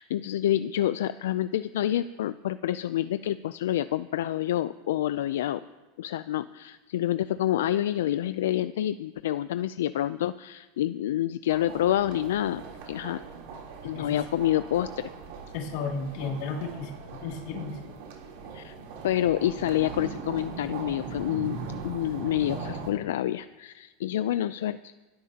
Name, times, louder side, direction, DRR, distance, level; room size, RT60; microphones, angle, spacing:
voice 1, 0.0-5.6 6.0-13.2 13.8-15.1 18.5-18.7 19.0-21.6 21.8-24.9, left 12 dB, 90° left, 13 dB, 0.4 m, -28 dB
sound 1, 11.5-22.9, right 5 dB, 70° right, 3.3 m, -40 dB
voice 2, 15.5-16.9 17.2-17.9, left 4 dB, 60° left, 1 dB, 2.6 m, -33 dB
25.0 x 12.5 x 2.9 m, 1.2 s
supercardioid pair, 145°, 0 cm